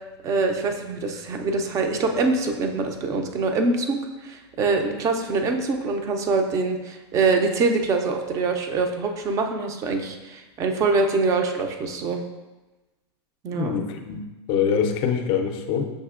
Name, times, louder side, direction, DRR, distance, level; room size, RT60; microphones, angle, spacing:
voice 1, 0.2-12.2 13.4-13.7, right 3 dB, 20° right, 5 dB, 0.4 m, -24 dB
voice 2, 13.5-15.9, left 7 dB, 35° left, 5 dB, 0.4 m, -24 dB
6.4 x 2.7 x 2.4 m, 1.1 s
supercardioid pair, 145°, 14 cm